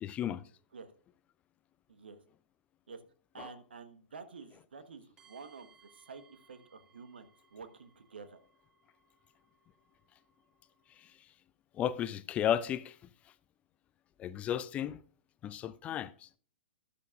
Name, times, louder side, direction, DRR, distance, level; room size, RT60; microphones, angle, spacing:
voice 1, 0.0-0.4 3.4-3.5 11.8-12.9 14.2-15.0 15.4-16.3, left 10 dB, 20° left, 0.4 m, -33 dB
voice 2, 1.9-2.2 2.9-3.0 3.3-8.4, right 5 dB, 65° right, 1.3 m, -50 dB
sound 1, 5.2-11.1, right 4 dB, 20° right, 6.5 m, -67 dB
13.0 x 11.5 x 2.4 m
figure-of-eight pair, 105°, 6 cm